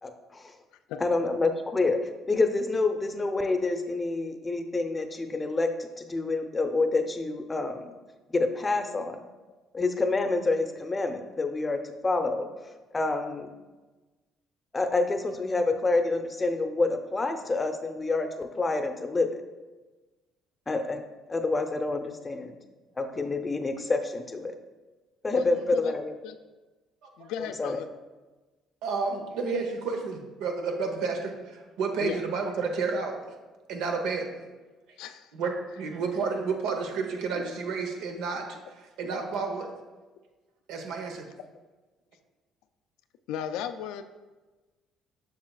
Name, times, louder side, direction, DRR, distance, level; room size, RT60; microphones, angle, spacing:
voice 1, 0.0-0.5 1.0-7.9 8.3-9.2 9.7-12.5 12.9-13.5 14.7-19.4 20.7-21.0 21.3-22.5 23.0-24.6 25.2-26.1 27.6-27.8, left 3 dB, 25° left, 7 dB, 0.7 m, -28 dB
voice 2, 25.3-25.9 26.2-26.4 27.2-27.9 32.0-32.2 35.0-35.3 43.3-44.0, left 9 dB, 80° left, 9 dB, 0.4 m, -35 dB
voice 3, 28.8-33.2 33.7-34.3 35.3-39.7 40.7-41.3, right 4 dB, 80° right, 3 dB, 0.9 m, -31 dB
7.4 x 5.6 x 2.3 m, 1.2 s
supercardioid pair, 70°, 0 cm